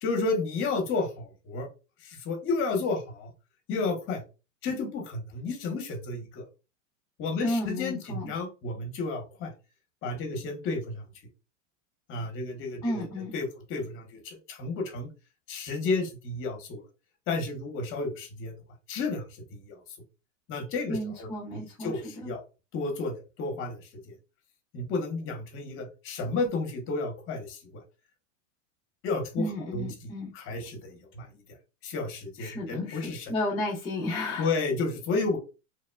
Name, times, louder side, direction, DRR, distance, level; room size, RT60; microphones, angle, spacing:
voice 1, 0.0-1.7 2.0-3.3 3.7-4.2 4.6-6.4 7.2-9.5 10.0-11.0 12.1-13.1 13.3-15.1 15.5-16.8 17.3-18.5 18.9-19.2 19.7-19.8 20.5-22.4 22.7-23.8 24.7-27.6 29.0-29.4 29.7-29.9 30.3-31.3 31.8-33.3 34.4-35.4, left 3 dB, 30° left, 0.9 m, -31 dB
voice 2, 7.4-8.3 12.8-13.3 20.9-22.3 29.4-30.3 32.4-34.5, left 1 dB, 15° left, 0.4 m, -33 dB
3.1 x 2.0 x 2.2 m
supercardioid pair, 140°, 40 cm